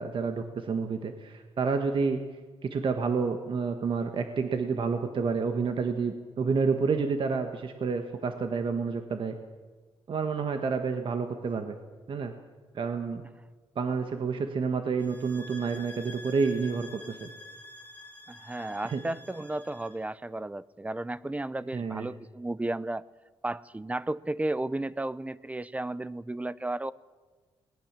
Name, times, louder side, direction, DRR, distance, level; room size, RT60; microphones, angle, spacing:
voice 1, 0.0-2.2 2.6-9.3 10.1-11.8 12.1-12.3 12.7-13.2 13.7-17.3 18.8-19.0 21.7-22.1, right 5 dB, 50° right, 6 dB, 1.5 m, -29 dB
sound 1, 15.0-20.0, left 1 dB, 15° left, 2.4 m, -48 dB
voice 2, 18.3-23.0 23.4-26.9, right 2 dB, 15° right, 18 dB, 0.6 m, -33 dB
21.0 x 19.5 x 7.5 m, 1.4 s
cardioid pair, 120°, 11 cm